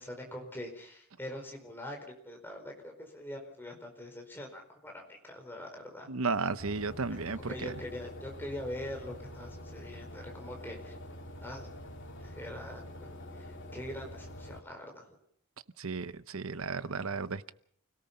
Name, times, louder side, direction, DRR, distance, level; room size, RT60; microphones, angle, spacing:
voice 1, 0.0-6.1 7.1-11.0 11.4-11.7 12.2-15.2, left 1 dB, 10° left, 4.7 m, -43 dB
voice 2, 6.1-7.8 15.8-17.5, right 4 dB, 70° right, 0.8 m, -34 dB
sound 1, 6.6-14.6, left 1 dB, 55° left, 3.0 m, -46 dB
29.0 x 18.0 x 5.5 m
head